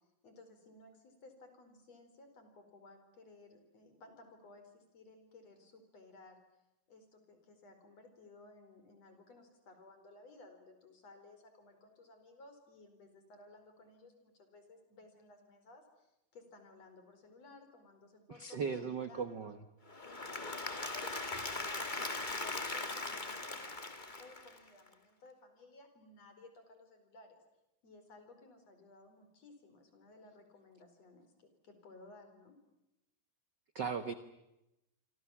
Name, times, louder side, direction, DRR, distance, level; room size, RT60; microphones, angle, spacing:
voice 1, 0.2-6.4 6.9-19.5 20.0-27.4 27.8-32.6, left 2 dB, 50° left, 7 dB, 5.6 m, -58 dB
voice 2, 18.3-19.6 33.7-34.1, right 6 dB, 65° right, 11 dB, 1.0 m, -37 dB
Applause / Crowd, 19.9-24.9, left 2 dB, 20° left, 1.7 m, -40 dB
27.5 x 26.0 x 7.3 m, 0.90 s
omnidirectional pair, 3.8 m